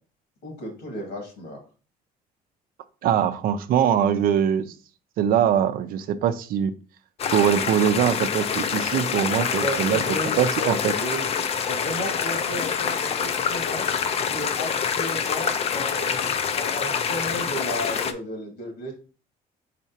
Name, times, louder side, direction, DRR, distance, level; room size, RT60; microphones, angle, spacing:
voice 1, 0.4-1.6 9.6-11.2 11.7-13.9 14.3-18.9, left 1 dB, 85° left, 1 dB, 2.1 m, -33 dB
voice 2, 3.0-4.7 5.2-6.7 7.3-10.0 10.4-10.9, right 9 dB, 65° right, 11 dB, 0.5 m, -22 dB
sound 1, 7.2-18.1, left 7 dB, 40° left, 0.4 m, -26 dB
4.6 x 4.1 x 2.8 m, 0.37 s
cardioid pair, 130°, 16 cm